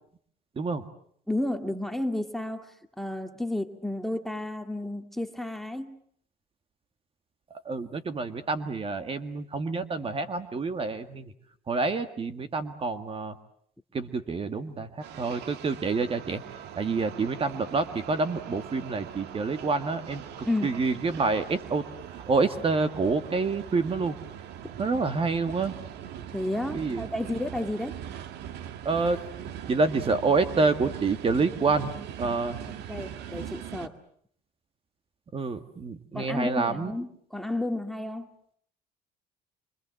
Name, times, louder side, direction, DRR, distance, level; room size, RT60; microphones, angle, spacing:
voice 1, 0.6-0.9 7.5-11.3 11.7-13.4 13.9-16.4 16.8-20.2 20.6-21.8 22.3-24.1 24.8-25.7 26.7-27.0 28.8-29.2 29.7-32.6 35.3-36.9, right 4 dB, 35° right, 9 dB, 2.0 m, -27 dB
voice 2, 1.3-6.0 20.5-20.7 26.3-28.0 32.9-33.9 36.1-38.3, left 1 dB, ahead, 6 dB, 2.1 m, -32 dB
sound 1, 15.0-33.9, right 10 dB, 80° right, 1.8 m, -41 dB
26.0 x 25.5 x 7.8 m, 0.64 s
cardioid pair, 110°, 17 cm